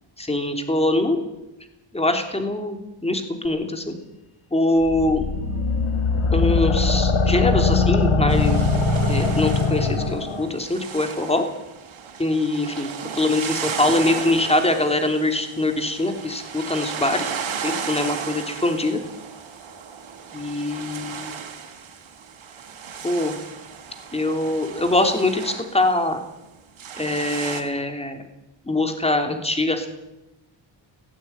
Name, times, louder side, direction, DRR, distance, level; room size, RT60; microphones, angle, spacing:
voice 1, 0.2-1.2 1.9-3.9 4.5-5.3 6.3-8.6 9.0-11.4 12.2-12.9 13.2-17.3 17.6-19.0 20.3-21.3 23.0-23.3 24.1-26.2 27.0-28.3 28.6-29.9, left 2 dB, 10° left, 6 dB, 3.1 m, -23 dB
sound 1, 4.9-10.5, left 4 dB, 85° left, 2.7 m, -21 dB
sound 2, 8.3-26.1 26.4-26.5 26.8-27.6, right 6 dB, 75° right, 3.7 m, -35 dB
17.5 x 16.0 x 9.4 m, 0.93 s
wide cardioid pair, 135°, 48 cm